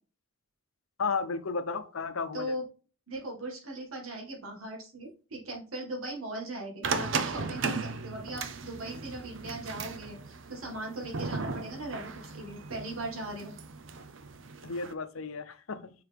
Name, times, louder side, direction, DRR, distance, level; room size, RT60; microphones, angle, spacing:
voice 1, 1.0-2.5 14.6-15.9, left 4 dB, 85° left, 0.7 m, -33 dB
voice 2, 2.3-2.6 3.1-13.5, right 1 dB, 90° right, 2.0 m, -39 dB
sound 1, 6.8-14.9, right 4 dB, 65° right, 0.6 m, -36 dB
6.5 x 4.7 x 3.4 m
head